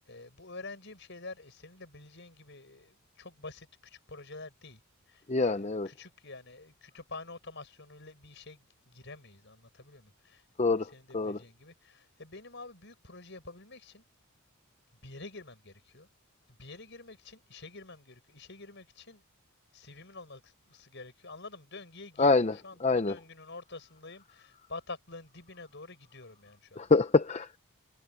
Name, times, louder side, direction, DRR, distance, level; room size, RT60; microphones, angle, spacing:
voice 1, 0.0-4.8 5.1-10.4 10.8-14.0 15.0-16.1 16.5-19.2 19.7-26.9, left 3 dB, 55° left, 6.3 m, -48 dB
voice 2, 5.3-5.9 10.6-10.9 11.1-11.4 22.2-22.5 22.8-23.1 26.8-27.6, left 3 dB, 30° left, 0.6 m, -25 dB
head